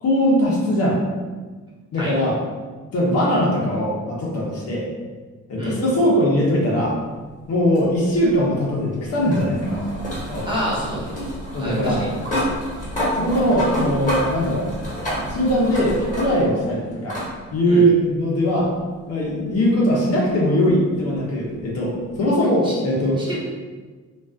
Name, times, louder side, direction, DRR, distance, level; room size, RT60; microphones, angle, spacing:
voice 1, 0.0-1.0 1.9-2.4 2.9-4.9 5.5-6.9 7.5-9.8 10.3-10.6 11.5-12.0 13.1-14.7 15.3-17.2 17.5-18.7 19.1-23.2, equal, 55° left, -4 dB, 0.7 m, -20 dB
sound 1, 7.7-16.6 17.1-17.3 18.6-18.7 21.6-21.7, equal, 25° left, 1.1 m, -28 dB
voice 2, 10.4-11.1 11.6-12.1 17.7-17.8 22.6-22.7 23.2-23.4, equal, 15° right, -7 dB, 0.8 m, -27 dB
2.3 x 2.3 x 2.3 m, 1.4 s
cardioid pair, 90°, 30 cm